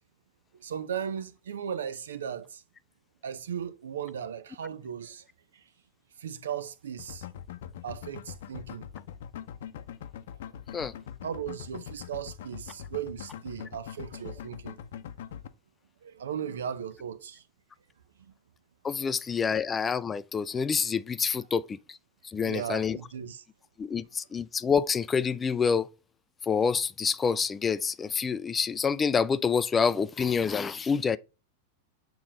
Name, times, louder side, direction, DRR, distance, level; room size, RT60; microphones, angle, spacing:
voice 1, 0.5-2.6 3.2-5.2 5.5-5.6 6.2-7.3 7.8-8.9 11.2-14.8 16.0-17.4 18.2-18.3 19.0-19.1 22.4-23.4, right 8 dB, 80° right, 0.7 m, -37 dB
sound 1, 7.0-15.5, left 9 dB, 70° left, 0.6 m, -42 dB
voice 2, 18.8-22.0 22.2-23.0 23.8-25.9 26.4-31.2, left 6 dB, 20° left, 0.4 m, -27 dB
7.0 x 3.1 x 4.9 m
hypercardioid pair, 100°, 0 cm